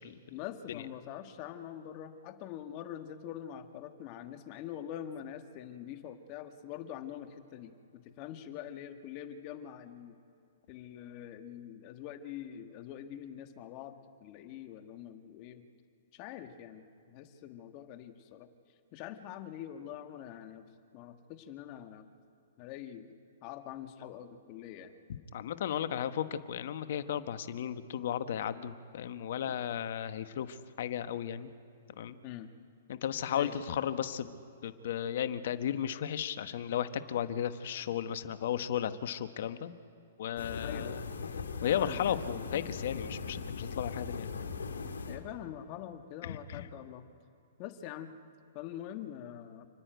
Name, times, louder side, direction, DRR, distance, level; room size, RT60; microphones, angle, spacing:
voice 1, 0.3-10.2 10.7-15.6 16.1-18.5 18.9-20.6 20.9-22.1 22.6-23.2 23.4-24.9 29.5-29.6 32.2-32.5 33.3-33.6 40.6-41.0 41.7-42.7 45.1-47.1 47.6-48.1 48.5-49.7, left 10 dB, 40° left, 7 dB, 1.5 m, -44 dB
voice 2, 25.3-31.5 32.0-32.2 32.9-34.4 34.6-39.7 40.2-41.0 41.6-44.5 46.3-46.6, left 9 dB, 60° left, 11 dB, 1.1 m, -34 dB
sound 1, 40.4-45.3, left 5 dB, 90° left, 2.0 m, -39 dB
29.0 x 9.9 x 9.2 m, 2.7 s
hypercardioid pair, 130°, 0 cm